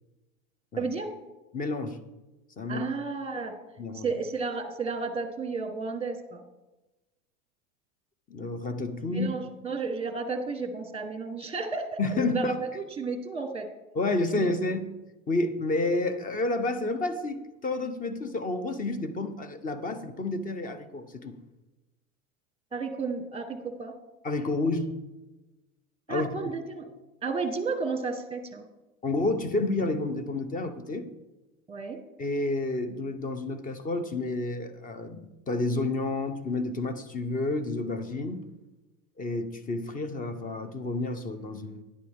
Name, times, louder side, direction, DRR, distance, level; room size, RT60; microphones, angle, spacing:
voice 1, 0.8-1.1 2.7-3.5 3.9-6.5 9.1-13.7 14.3-14.5 22.7-23.9 26.1-26.9 27.2-28.6 31.7-32.0, right 4 dB, 15° right, 7 dB, 1.5 m, -32 dB
voice 2, 1.5-2.0 2.6-2.9 3.8-4.1 8.3-9.3 12.0-12.6 13.9-14.9 15.3-21.4 24.2-24.9 26.1-26.4 29.0-31.1 32.2-38.4 39.2-41.8, left 2 dB, 20° left, 11 dB, 1.0 m, -30 dB
11.0 x 11.0 x 3.7 m, 1.1 s
hypercardioid pair, 120°, 40 cm